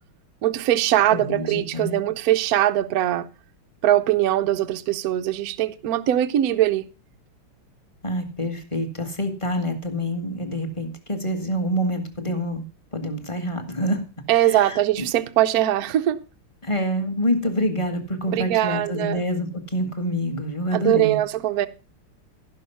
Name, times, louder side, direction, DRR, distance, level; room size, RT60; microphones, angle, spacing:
voice 1, 0.4-3.3 3.8-6.8 14.3-16.2 18.3-19.2 20.7-21.7, right 13 dB, 80° right, 0.8 m, -21 dB
voice 2, 1.1-2.0 8.0-12.6 12.9-14.0 14.3-15.1 16.6-21.2, equal, 15° left, 1.4 m, -27 dB
15.5 x 5.8 x 5.6 m
omnidirectional pair, 2.4 m